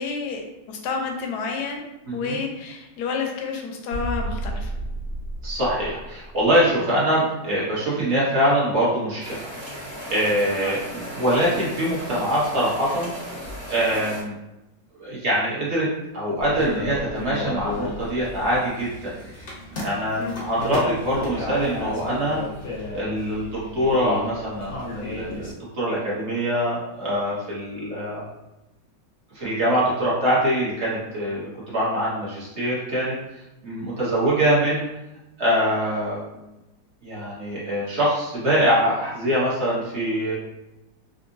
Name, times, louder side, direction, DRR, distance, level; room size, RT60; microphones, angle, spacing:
voice 1, 0.0-4.7 10.6-10.8 20.2-20.4, left 5 dB, 70° left, 2 dB, 1.1 m, -30 dB
voice 2, 2.0-2.4 5.4-9.5 10.1-13.1 13.7-14.4 15.0-15.9 16.1-19.1 19.8-22.4 22.9-28.2 29.3-33.1 33.6-34.9 35.4-36.4 37.0-40.3, equal, 45° right, -8 dB, 1.2 m, -23 dB
sound 1, 3.9-6.6, right 1 dB, 70° right, 1.7 m, -31 dB
sound 2, 9.2-14.2, equal, 20° right, 0.9 m, -36 dB
sound 3, 16.4-25.5, left 2 dB, 50° left, 0.6 m, -33 dB
3.8 x 2.5 x 2.6 m, 0.94 s
omnidirectional pair, 2.0 m